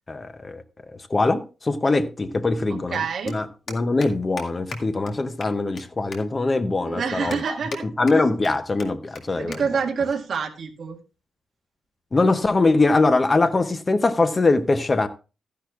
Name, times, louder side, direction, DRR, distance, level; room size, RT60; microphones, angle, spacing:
voice 1, 0.1-0.6 1.1-3.0 3.3-7.4 7.8-9.6 12.1-15.1, left 3 dB, 20° left, 0.6 m, -22 dB
sound 1, 1.0-1.1 2.5-2.6 2.8-3.0 3.3-3.4 3.7-4.1 4.4-4.5 4.7-4.8 5.1-5.2 5.4-5.8 6.1-6.2 6.7-6.8 7.3-7.8 8.1-8.5 8.8-8.9 9.1-9.2 9.5-9.6 9.9-10.2 10.9-11.2, left 4 dB, 55° left, 2.1 m, -38 dB
voice 2, 2.9-3.4 6.9-7.8 9.3-11.0, right 6 dB, 50° right, 1.7 m, -27 dB
14.5 x 10.0 x 2.4 m
wide cardioid pair, 165°, 0 cm